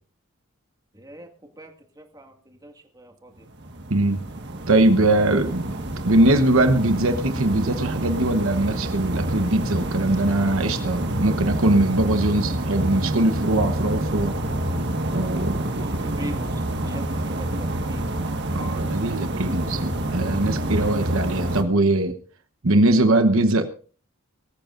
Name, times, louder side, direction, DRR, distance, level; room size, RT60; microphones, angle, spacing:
voice 1, 0.9-3.5 15.1-18.1, equal, 15° right, 3 dB, 2.0 m, -42 dB
sound 1, 3.5-21.6, right 1 dB, 50° right, 1.7 m, -27 dB
voice 2, 3.9-4.2 4.7-5.7 6.0-14.3 15.1-16.0 18.5-22.2 22.6-23.7, right 2 dB, 65° right, 8 dB, 1.1 m, -21 dB
22.5 x 14.5 x 2.6 m, 0.41 s
head